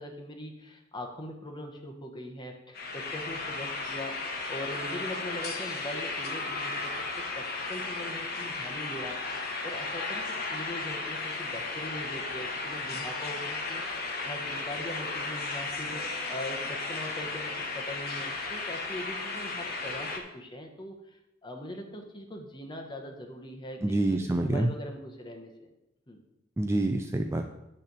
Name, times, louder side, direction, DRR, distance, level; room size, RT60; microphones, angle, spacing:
voice 1, 0.0-25.7 26.1-26.2, left 1 dB, 25° left, 3 dB, 1.0 m, -41 dB
sound 1, 2.8-20.2, left 3 dB, 50° left, 1.2 m, -35 dB
voice 2, 23.8-24.7 26.6-27.5, right 1 dB, 15° right, 4 dB, 0.4 m, -27 dB
9.1 x 3.4 x 6.8 m, 0.89 s
head